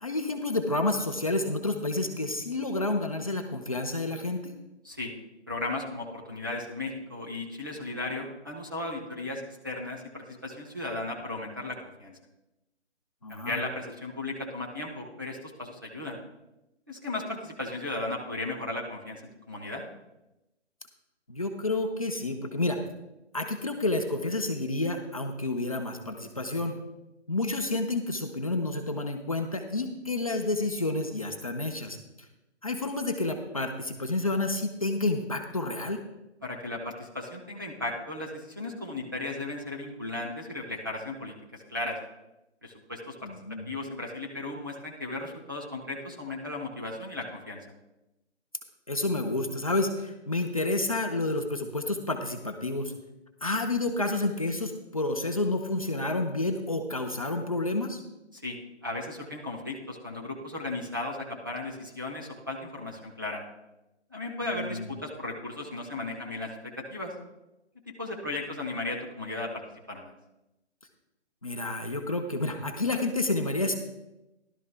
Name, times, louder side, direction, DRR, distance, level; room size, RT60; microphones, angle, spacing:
voice 1, 0.0-4.5 13.2-13.6 21.3-22.8 23.3-26.8 27.3-32.0 32.6-36.0 43.2-43.6 48.9-52.9 53.4-58.0 64.4-64.9 71.4-73.7, left 2 dB, 30° left, 3 dB, 0.7 m, -29 dB
voice 2, 5.5-12.2 13.3-16.2 16.9-19.2 19.5-19.8 36.4-42.0 42.6-47.6 58.3-63.4 64.1-67.1 67.9-69.6 69.9-70.1, left 2 dB, 20° right, -3 dB, 0.6 m, -36 dB
16.0 x 12.0 x 2.2 m, 0.94 s
hypercardioid pair, 175°, 35 cm